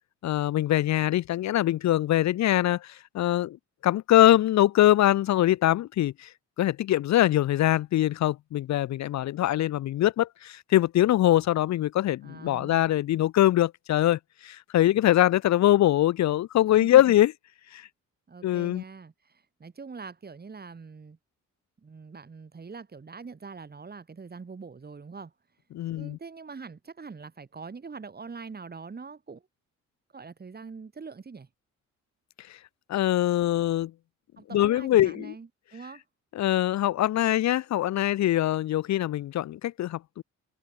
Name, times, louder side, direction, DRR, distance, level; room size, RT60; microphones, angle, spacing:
voice 1, 0.2-3.6 3.8-6.3 6.6-17.3 17.7-17.8 18.4-18.8 25.7-26.2 32.9-33.9 34.5-35.3 36.3-40.2, left 13 dB, 65° left, 0.7 m, -23 dB
voice 2, 12.2-12.9 16.8-17.1 18.3-21.2 21.8-25.3 25.9-29.4 30.1-31.5 34.4-36.0, right 5 dB, 30° right, 4.7 m, -43 dB
cardioid pair, 90°, 30 cm